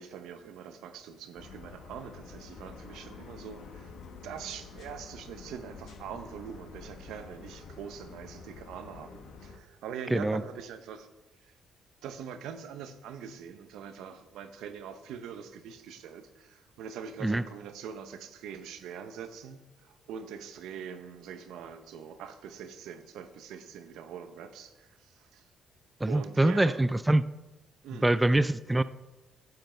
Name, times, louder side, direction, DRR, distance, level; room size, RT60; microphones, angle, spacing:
voice 1, 0.0-4.0 4.2-11.1 11.4-11.5 12.0-25.4 26.1-26.8 27.8-28.2, right 7 dB, 90° right, 9 dB, 0.8 m, -43 dB
sound 1, 1.4-9.6, left 5 dB, 75° left, 1.1 m, -48 dB
voice 2, 26.0-27.2 28.0-28.8, right 1 dB, 10° right, 14 dB, 0.3 m, -24 dB
10.5 x 8.1 x 4.4 m, 1.1 s
cardioid pair, 90°, 0 cm